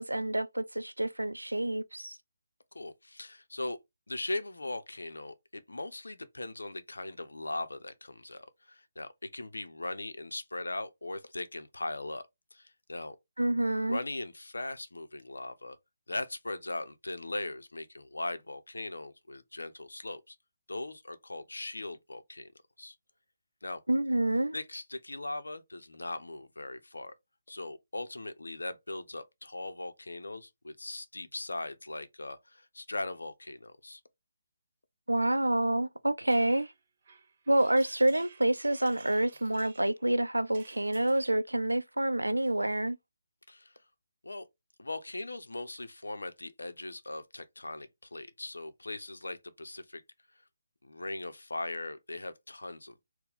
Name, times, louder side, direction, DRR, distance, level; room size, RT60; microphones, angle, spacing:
voice 1, 0.0-2.2 13.4-14.0 23.9-24.5 35.1-36.7 37.5-43.0, right 1 dB, 90° right, 0.5 m, -28 dB
voice 2, 2.7-3.8 4.1-13.2 13.9-15.8 16.1-20.4 20.7-22.5 22.8-23.0 23.6-23.8 24.5-27.1 27.5-34.0 43.5-43.7 44.2-44.5 44.8-50.0 50.8-53.0, left 2 dB, 75° left, 0.7 m, -39 dB
sound 1, 36.3-41.4, right 4 dB, 45° right, 1.0 m, -55 dB
4.5 x 2.2 x 3.5 m
figure-of-eight pair, 145°, 0 cm